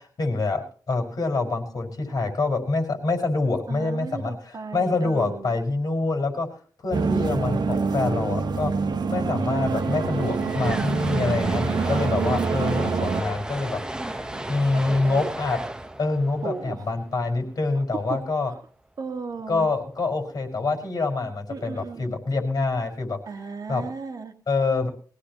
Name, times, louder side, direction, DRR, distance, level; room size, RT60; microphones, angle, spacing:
voice 1, 0.0-6.5 6.8-13.8 14.1-15.6 16.0-18.5 19.5-23.2 23.7-23.8 24.5-24.9, left 3 dB, 60° left, 3 dB, 5.2 m, -26 dB
voice 2, 3.7-5.6 6.9-7.5 11.8-12.3 14.3-15.3 16.3-16.9 17.8-18.7 19.0-19.7 21.5-22.1 23.3-24.3, right 4 dB, 55° right, 4 dB, 2.0 m, -36 dB
sound 1, 6.9-13.2, right 5 dB, 75° right, 1.2 m, -26 dB
sound 2, 9.6-17.6, right 1 dB, 10° right, 0.8 m, -34 dB
22.0 x 16.5 x 3.0 m, 0.43 s
wide cardioid pair, 170°, 7 cm